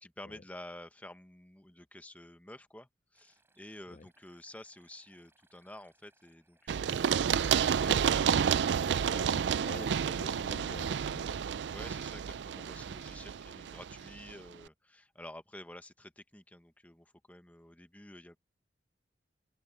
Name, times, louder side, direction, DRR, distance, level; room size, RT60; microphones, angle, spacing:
voice 1, 0.0-7.4 7.7-8.1 11.7-18.4, left 1 dB, 10° left, 1.1 m, -50 dB
sound 1, 3.1-11.1, right 2 dB, 15° right, 6.2 m, -70 dB
Run, 6.7-14.3, right 7 dB, 80° right, 0.4 m, -30 dB
voice 2, 8.8-11.4, left 3 dB, 45° left, 0.5 m, -48 dB
head